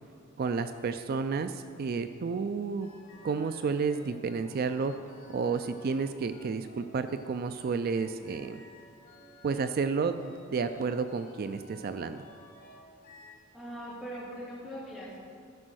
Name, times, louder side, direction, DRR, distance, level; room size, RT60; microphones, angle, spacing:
voice 1, 0.4-2.9 3.2-4.9 5.3-8.6 9.4-12.3, right 5 dB, 45° right, 10 dB, 0.3 m, -31 dB
sound 1, 2.8-13.3, left 1 dB, 45° left, 1.6 m, -55 dB
voice 2, 13.5-15.2, equal, 5° right, -8 dB, 2.9 m, -41 dB
14.0 x 5.3 x 6.3 m, 2.3 s
head